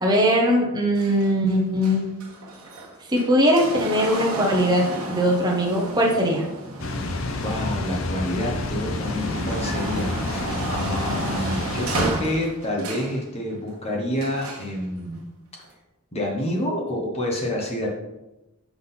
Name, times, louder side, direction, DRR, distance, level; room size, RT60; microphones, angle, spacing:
voice 1, 0.0-2.1 3.1-6.4, equal, 20° right, -1 dB, 1.1 m, -20 dB
sound 1, 1.0-8.2 8.6-13.2 14.2-14.7 15.6-15.7, right 2 dB, 85° right, 1.1 m, -33 dB
Water, 6.8-12.1, left 2 dB, 65° left, 0.7 m, -29 dB
voice 2, 7.0-15.2 16.1-17.9, left 1 dB, 30° left, -1 dB, 1.2 m, -28 dB
5.9 x 3.8 x 5.7 m, 0.97 s
head